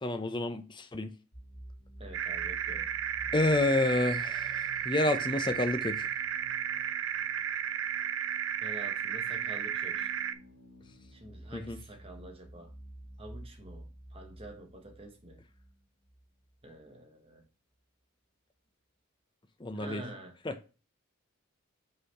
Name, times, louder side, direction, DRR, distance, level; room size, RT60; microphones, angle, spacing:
voice 1, 0.0-1.1 3.3-6.1 11.5-11.8 19.6-20.0 20.4-20.6, left 2 dB, 20° left, 0.6 m, -29 dB
sound 1, 1.3-16.9, right 1 dB, 85° left, 2.4 m, -51 dB
voice 2, 2.0-2.9 8.6-10.1 11.1-12.7 13.2-15.4 16.6-17.4 19.7-20.3, right 1 dB, 25° right, 1.2 m, -47 dB
sound 2, 2.1-10.3, right 9 dB, 60° right, 0.5 m, -33 dB
5.5 x 4.1 x 4.1 m
head